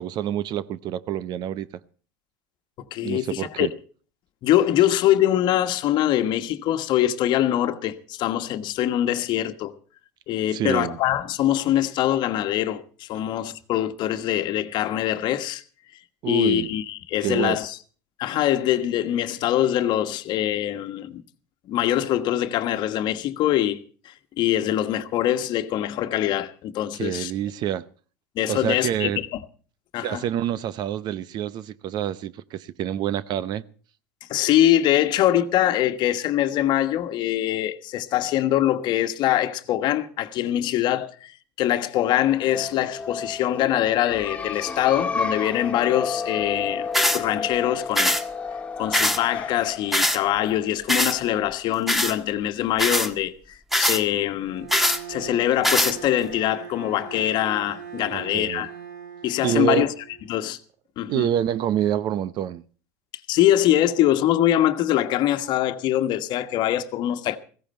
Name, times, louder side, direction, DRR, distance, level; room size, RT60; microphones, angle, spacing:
voice 1, 0.0-1.7 3.0-3.7 10.5-11.0 16.2-16.7 17.2-17.6 26.9-27.9 28.5-29.2 30.0-33.6 58.1-58.7 59.4-59.9 61.1-62.6, right 10 dB, 50° right, 0.7 m, -27 dB
voice 2, 2.9-3.7 4.4-9.7 10.3-15.6 16.2-17.8 18.2-21.2 21.7-23.8 24.0-27.3 28.3-29.4 29.9-30.2 34.3-46.9 47.1-48.2 48.8-58.7 59.2-59.9 60.3-60.6 61.0-61.3 63.3-67.4, left 12 dB, 55° left, 1.3 m, -23 dB
sound 1, 42.2-51.7, left 4 dB, 15° left, 1.6 m, -32 dB
sound 2, 46.9-47.2 48.0-48.2 48.9-49.2 49.9-50.2 50.9-51.2 51.9-52.1 52.8-53.1 53.7-54.0 54.7-55.0 55.6-55.9, left 1 dB, ahead, 1.5 m, -21 dB
Bowed string instrument, 54.4-60.4, right 8 dB, 85° right, 2.4 m, -40 dB
15.5 x 15.5 x 4.4 m
supercardioid pair, 100°, 9 cm